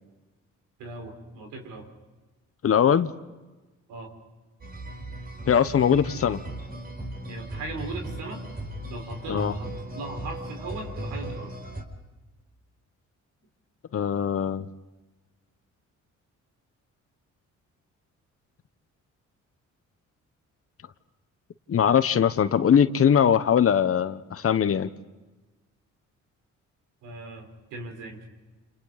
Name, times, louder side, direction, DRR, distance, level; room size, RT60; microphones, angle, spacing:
voice 1, 0.8-1.9 3.9-4.1 7.3-8.4 8.9-11.5 27.0-28.3, right 3 dB, 90° right, 3 dB, 5.1 m, -38 dB
voice 2, 2.6-3.1 5.5-6.4 9.3-9.5 13.9-14.7 21.7-24.9, left 8 dB, 50° left, 12 dB, 1.1 m, -21 dB
sound 1, 4.6-11.8, right 1 dB, 30° right, 5.3 m, -37 dB
29.0 x 28.5 x 4.2 m, 1.2 s
cardioid pair, 90°, 30 cm